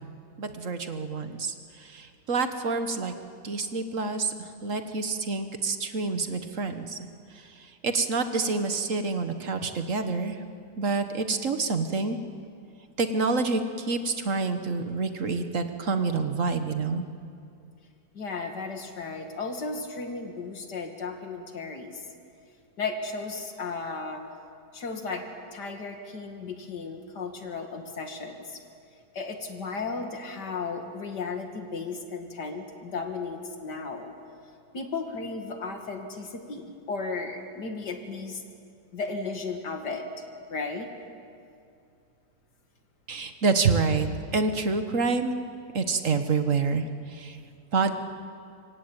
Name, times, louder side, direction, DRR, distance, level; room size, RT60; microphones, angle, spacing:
voice 1, 0.4-3.1 3.4-7.0 7.8-10.4 10.8-12.2 13.0-17.0 43.1-45.4 45.7-47.4 47.7-47.9, right 4 dB, 50° right, 8 dB, 1.6 m, -27 dB
voice 2, 18.1-22.0 22.8-24.2 24.7-25.2 25.5-28.6 29.1-34.1 34.7-38.4 38.9-40.1 40.5-40.9, left 4 dB, 85° left, 5 dB, 2.8 m, -35 dB
25.0 x 24.0 x 9.0 m, 2.4 s
omnidirectional pair, 1.7 m